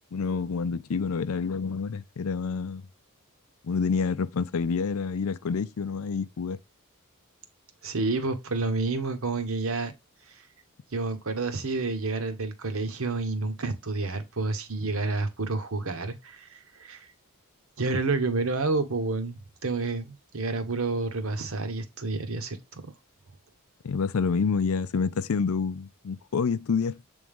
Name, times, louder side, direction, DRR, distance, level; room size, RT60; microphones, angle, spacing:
voice 1, 0.1-2.8 3.6-6.6 23.8-27.0, left 5 dB, 70° left, 0.4 m, -28 dB
voice 2, 7.8-9.9 10.9-17.1 17.8-22.8, right 3 dB, 65° right, 1.1 m, -29 dB
7.6 x 3.5 x 3.6 m
head